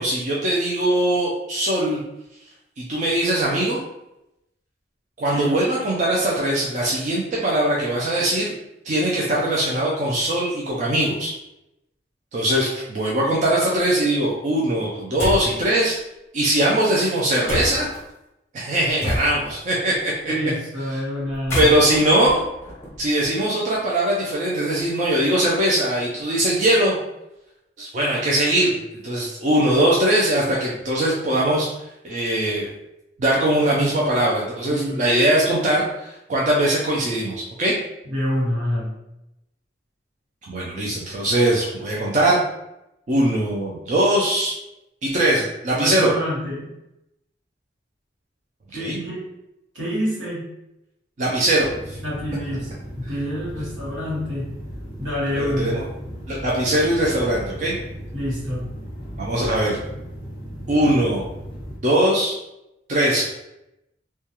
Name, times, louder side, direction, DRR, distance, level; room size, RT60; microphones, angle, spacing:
voice 1, 0.0-2.0 2.8-3.8 5.2-8.5 8.8-11.3 12.3-16.0 16.3-17.9 18.5-20.3 21.5-22.5 23.0-27.0 27.8-28.7 29.0-31.7 32.0-32.7 33.2-37.7 40.5-42.4 43.1-44.5 45.0-46.1 48.8-49.0 51.2-52.0 55.3-55.8 56.3-57.8 59.2-59.8 60.7-61.2 61.8-62.4 62.9-63.3, right 1 dB, 40° right, -4 dB, 0.4 m, -21 dB
sound 1, 15.2-15.6 17.5-18.0 19.0-19.6 21.3-23.3, left 1 dB, 15° left, 0.6 m, -28 dB
voice 2, 20.2-21.7 34.7-35.0 38.0-38.9 45.8-46.7 48.7-49.2 49.7-50.5 52.0-54.5 55.0-55.7 58.1-58.7, equal, 85° right, -8 dB, 1.3 m, -27 dB
sound 2, 51.6-61.8, equal, 20° right, 1.0 m, -36 dB
2.2 x 2.2 x 2.8 m, 0.88 s
head